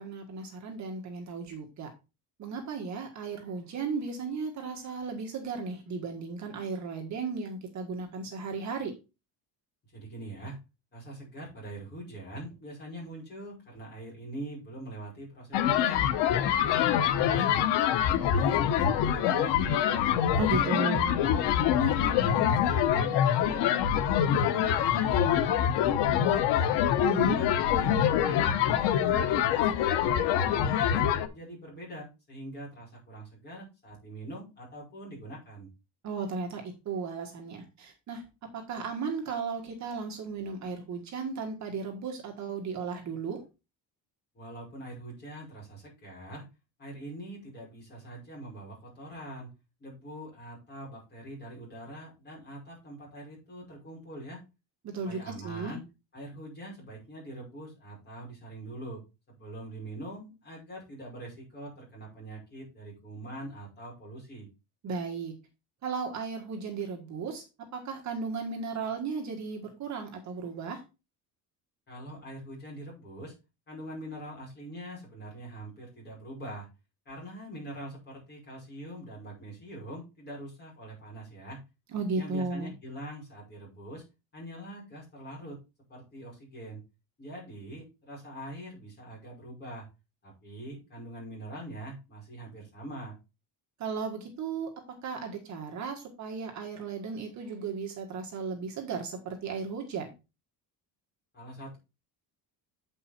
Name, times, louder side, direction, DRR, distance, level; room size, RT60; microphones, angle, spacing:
voice 1, 0.0-1.9 2.4-8.9 20.4-21.1 27.0-27.4 36.0-38.2 38.5-43.4 54.8-55.7 64.8-65.3 65.8-67.4 67.7-70.8 81.9-82.7 93.8-100.1, right 4 dB, 45° right, 2 dB, 1.7 m, -35 dB
voice 2, 9.9-10.6 10.9-16.0 16.4-17.7 18.1-20.1 20.5-21.4 21.8-26.8 27.3-27.9 28.2-31.1 31.3-35.7 44.3-46.5 46.8-49.5 49.8-54.4 55.0-55.8 56.1-59.0 59.3-64.5 71.9-73.3 73.7-76.7 77.1-81.6 82.1-84.0 84.3-85.6 85.9-86.8 87.2-89.9 90.2-93.2 101.3-101.8, right 1 dB, 25° left, -3 dB, 5.6 m, -43 dB
sound 1, 15.5-31.3, left 9 dB, 80° left, 1.0 m, -25 dB
8.5 x 5.5 x 4.3 m, 0.27 s
cardioid pair, 170°, 41 cm